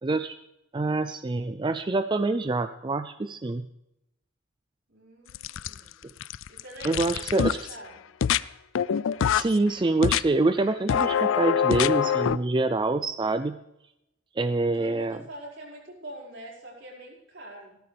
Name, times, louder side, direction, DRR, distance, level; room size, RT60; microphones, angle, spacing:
voice 1, 0.0-0.4 0.7-3.7 6.8-7.7 9.3-13.6 14.4-15.2, right 2 dB, 25° right, 10 dB, 0.4 m, -26 dB
voice 2, 4.9-6.0 6.5-8.0 14.8-17.8, right 1 dB, 70° right, -4 dB, 5.3 m, -44 dB
sound 1, 5.3-5.9 6.2-7.8 8.2-8.4 8.8-9.5 10.0-10.2 10.9-12.4, left 8 dB, 85° left, 0.4 m, -24 dB
16.5 x 14.0 x 3.4 m, 0.87 s
head